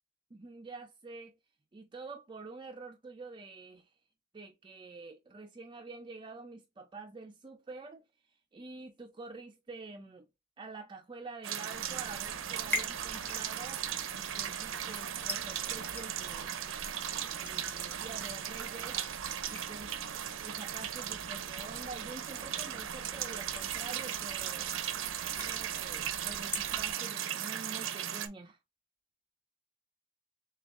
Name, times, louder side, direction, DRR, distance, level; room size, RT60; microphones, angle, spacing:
voice 1, 0.3-1.3 1.7-3.9 4.3-8.0 8.5-10.3 10.6-13.8 14.1-16.6 17.4-19.0 19.5-19.9 20.4-24.7 25.4-28.6, right 3 dB, 25° right, 0.4 m, -47 dB
sound 1, 11.4-28.3, right 9 dB, 80° right, 0.6 m, -37 dB
sound 2, 11.7-26.9, equal, 10° left, 1.1 m, -46 dB
6.8 x 2.3 x 2.5 m
head